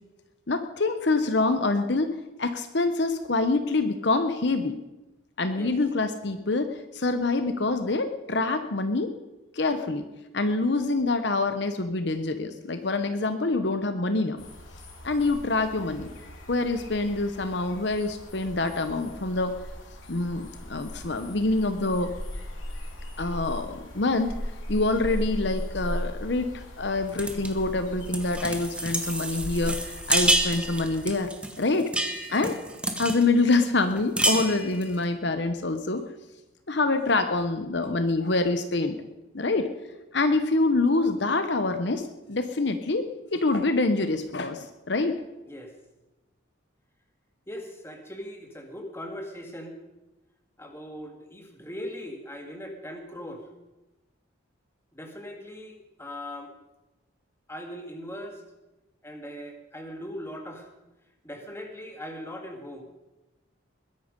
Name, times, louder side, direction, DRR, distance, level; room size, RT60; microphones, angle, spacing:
voice 1, 0.5-4.7 5.4-9.1 9.5-10.0 10.3-14.4 15.0-16.1 16.5-19.5 20.1-22.1 23.2-24.3 24.7-31.3 31.6-31.9 32.3-32.5 33.0-36.0 36.7-38.9 39.3-39.7 40.1-45.2, left 3 dB, 60° left, 8 dB, 0.9 m, -26 dB
sound 1, 14.4-31.1, left 1 dB, 80° left, 3.2 m, -38 dB
sound 2, 27.2-27.5 28.1-33.3 33.6-33.7 34.0-34.9, right 1 dB, 5° right, 1.2 m, -28 dB
voice 2, 47.5-49.8 50.6-53.5 54.9-56.5 57.5-58.4 59.0-60.7 61.2-62.8, equal, 10° left, 3 dB, 2.1 m, -40 dB
21.0 x 10.5 x 5.3 m, 1.0 s
head